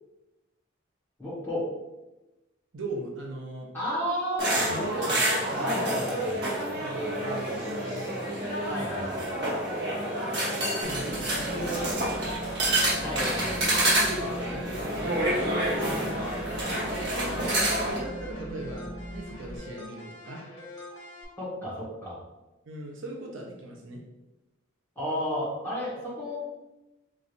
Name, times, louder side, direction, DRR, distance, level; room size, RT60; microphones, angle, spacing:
voice 1, 1.2-1.7 3.7-4.7 5.6-6.4 8.7-9.3 13.0-13.8 21.4-22.2 24.9-26.4, equal, 10° left, -10 dB, 1.4 m, -32 dB
voice 2, 2.7-3.7 4.6-6.1 6.7-8.6 10.8-11.9 14.0-15.3 16.6-20.4 22.6-24.0, right 1 dB, 70° right, 0 dB, 0.6 m, -39 dB
sound 1, 4.4-18.0, right 1 dB, 50° right, 1.1 m, -28 dB
sound 2, 10.8-19.6, right 1 dB, 5° right, 0.4 m, -40 dB
sound 3, 13.3-21.3, left 3 dB, 75° left, 0.8 m, -45 dB
3.9 x 3.1 x 2.5 m, 1.0 s
head